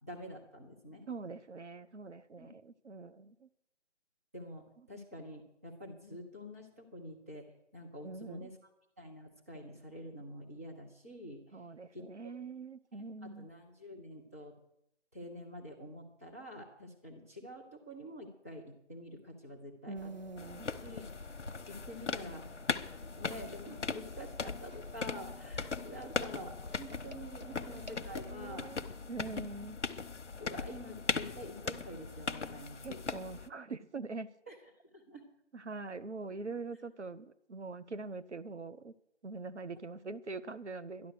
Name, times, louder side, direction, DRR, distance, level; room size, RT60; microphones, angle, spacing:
voice 1, 0.0-1.0 2.4-2.5 4.3-8.6 9.0-11.6 11.9-12.3 12.9-14.6 15.1-20.1 20.8-21.1 21.7-22.6 23.2-28.7 30.4-33.0 34.5-34.6 34.8-35.3, equal, 10° right, -2 dB, 1.0 m, -47 dB
voice 2, 1.1-3.5 8.0-8.5 11.5-13.5 19.9-20.7 27.4-29.8 32.8-34.3 35.5-38.9 39.2-41.1, right 3 dB, 70° right, 12 dB, 0.8 m, -44 dB
sound 1, 20.0-29.0, left 1 dB, 40° left, 0.4 m, -52 dB
sound 2, 20.4-33.5, left 4 dB, 70° left, 0.9 m, -39 dB
12.5 x 11.5 x 6.6 m, 0.79 s
figure-of-eight pair, 165°, 36 cm